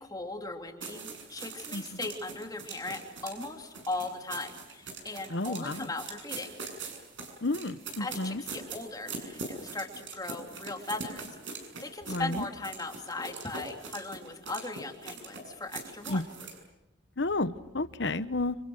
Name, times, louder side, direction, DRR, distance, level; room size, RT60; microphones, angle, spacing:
voice 1, 0.0-6.6 8.0-16.2, left 2 dB, 20° left, 3 dB, 3.1 m, -38 dB
sound 1, 0.8-16.6, right 4 dB, 70° right, 7.5 m, -42 dB
voice 2, 5.3-5.8 7.4-8.4 12.1-12.4 16.1-16.2 17.2-18.6, left 2 dB, 60° left, 13 dB, 1.1 m, -31 dB
29.5 x 28.0 x 6.4 m, 0.90 s
head